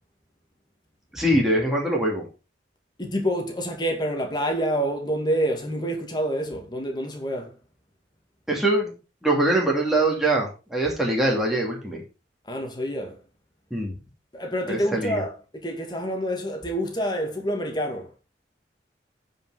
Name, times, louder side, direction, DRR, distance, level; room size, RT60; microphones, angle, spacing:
voice 1, 1.1-2.3 8.5-8.9 9.2-12.0 13.7-13.9 14.7-15.2, right 1 dB, ahead, 2.8 m, -23 dB
voice 2, 3.0-7.6 12.4-13.2 14.3-18.1, equal, 25° left, 2.2 m, -27 dB
9.2 x 5.4 x 5.7 m
head